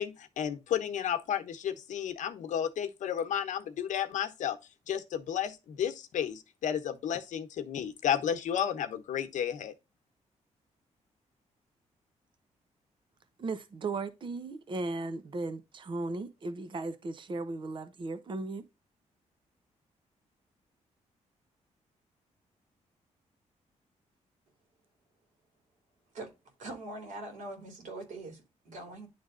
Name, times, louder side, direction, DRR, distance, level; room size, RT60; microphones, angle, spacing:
voice 1, 0.0-4.6 4.9-9.7, left 9 dB, 80° left, 1.1 m, -32 dB
voice 2, 13.4-18.6, right 3 dB, 40° right, 0.9 m, -36 dB
voice 3, 26.6-29.1, right 2 dB, 85° right, 3.1 m, -42 dB
10.5 x 3.5 x 3.8 m
cardioid pair, 125°, 13 cm